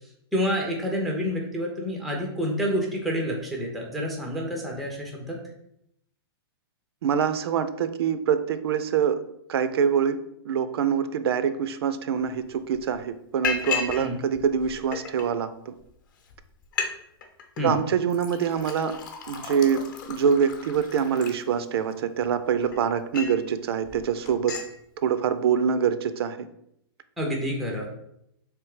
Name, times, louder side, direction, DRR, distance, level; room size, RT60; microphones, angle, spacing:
voice 1, 0.3-5.4 13.9-14.2 17.6-17.8 27.2-27.9, equal, ahead, 0 dB, 0.3 m, -28 dB
voice 2, 7.0-9.2 9.5-10.2 10.5-15.7 17.6-19.0 19.3-24.6 25.0-26.5, right 7 dB, 70° right, 12 dB, 0.4 m, -25 dB
Liquid, 12.3-12.4 12.7-13.0 13.4-14.0 14.3-15.2 15.9-16.0 16.3-16.4 16.6-16.9 17.2-17.6 18.1-21.9 22.4-23.4 23.8-24.0 24.3-24.7, left 6 dB, 50° left, 0.7 m, -34 dB
3.4 x 3.1 x 4.7 m, 0.77 s
supercardioid pair, 175°, 13 cm